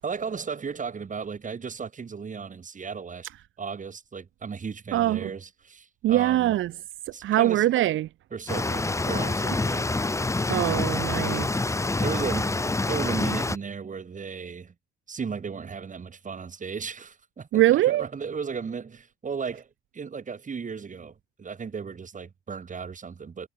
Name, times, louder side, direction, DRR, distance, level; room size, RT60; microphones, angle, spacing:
voice 1, 0.0-3.3 3.6-6.6 7.1-7.7 8.3-9.9 12.0-14.7 15.1-19.7 19.9-23.5, right 6 dB, 40° right, 6.9 m, -35 dB
voice 2, 4.9-5.3 6.0-6.7 7.2-8.1 10.5-11.5 17.5-18.0, right 14 dB, 80° right, 1.9 m, -22 dB
sound 1, 8.5-13.6, left 2 dB, 15° left, 1.1 m, -26 dB
cardioid pair, 90°, 20 cm